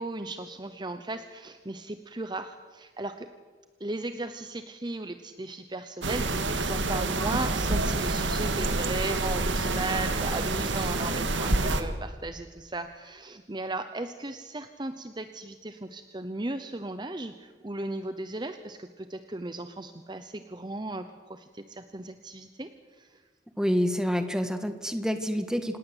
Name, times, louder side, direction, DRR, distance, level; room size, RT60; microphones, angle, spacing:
voice 1, 0.0-3.3 3.8-23.2, right 2 dB, 25° right, 9 dB, 0.9 m, -36 dB
sound 1, 6.0-11.8, right 2 dB, 75° right, 2.0 m, -27 dB
voice 2, 23.6-25.8, equal, 5° right, 8 dB, 1.6 m, -27 dB
27.0 x 19.0 x 8.0 m, 1.4 s
head